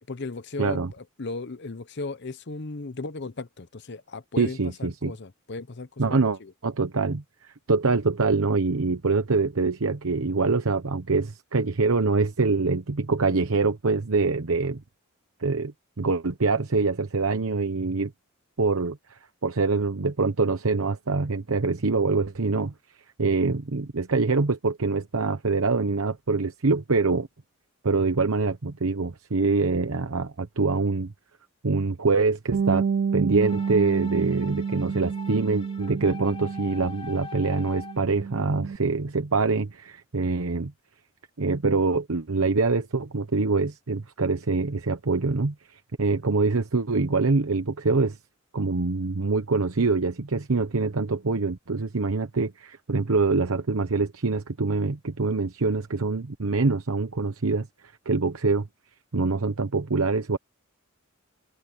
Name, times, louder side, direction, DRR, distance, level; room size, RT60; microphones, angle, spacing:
voice 1, 0.1-6.5, left 3 dB, 55° left, 0.8 m, -36 dB
voice 2, 0.6-0.9 4.4-5.1 6.0-14.8 15.4-18.1 18.6-22.7 23.2-27.3 27.8-31.1 31.6-32.9 33.1-40.7 41.4-48.2 48.5-58.7 59.1-60.4, right 3 dB, 80° right, 0.9 m, -25 dB
Bass guitar, 32.5-37.2 37.5-38.8, right 6 dB, 50° right, 0.3 m, -29 dB
sound 1, 33.4-38.2, left 4 dB, 25° left, 2.9 m, -43 dB
head